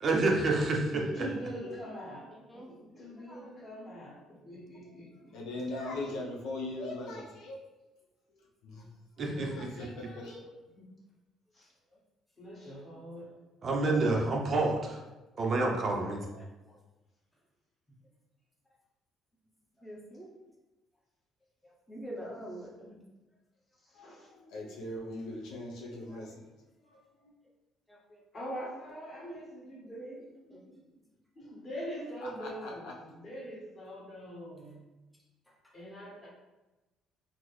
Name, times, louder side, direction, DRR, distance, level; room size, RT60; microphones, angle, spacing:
voice 1, 0.0-1.0 9.2-9.9 13.6-15.0 15.4-16.2, right 2 dB, 45° right, 0 dB, 0.5 m, -28 dB
voice 2, 0.9-5.3 9.2-9.6 11.5-11.7 12.4-13.3 23.8-24.3 28.3-30.8 31.3-34.8 35.7-36.3, equal, 30° left, -5 dB, 1.4 m, -43 dB
voice 3, 2.5-3.5 10.8-10.9 16.1-16.8 19.8-20.3 21.9-23.0 26.1-26.3 27.9-28.2 30.5-30.6, equal, 5° left, -4 dB, 0.6 m, -46 dB
voice 4, 5.3-7.6 8.3-8.9 9.2-10.5 23.9-26.4 26.8-27.3 32.2-33.0, left 2 dB, 85° left, -2 dB, 0.6 m, -41 dB
3.9 x 2.0 x 3.0 m, 1.1 s
cardioid pair, 115°, 0 cm